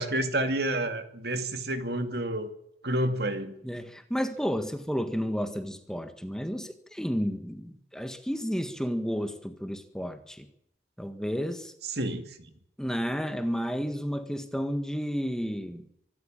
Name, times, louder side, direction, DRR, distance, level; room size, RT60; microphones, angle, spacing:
voice 1, 0.0-2.5 2.8-3.5 12.0-12.2, right 1 dB, 65° right, 8 dB, 2.4 m, -29 dB
voice 2, 3.6-10.5 11.0-11.7 12.8-15.8, equal, 5° left, 8 dB, 1.6 m, -32 dB
25.5 x 13.0 x 8.9 m, 0.73 s
head